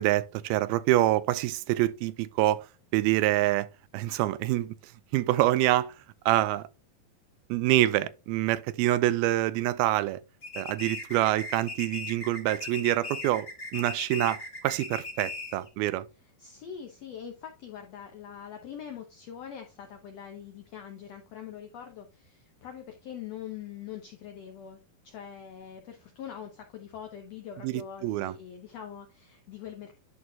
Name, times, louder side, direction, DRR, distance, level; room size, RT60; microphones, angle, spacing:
voice 1, 0.0-2.6 2.9-3.7 3.9-4.8 5.1-5.9 6.3-6.6 7.5-10.2 10.6-13.5 13.7-16.1 27.6-28.3, right 15 dB, 85° right, 2.4 m, -26 dB
sound 1, 10.4-15.7, left 3 dB, 35° left, 1.6 m, -38 dB
voice 2, 16.2-30.0, left 9 dB, 90° left, 1.4 m, -43 dB
11.0 x 4.2 x 2.8 m
omnidirectional pair, 4.4 m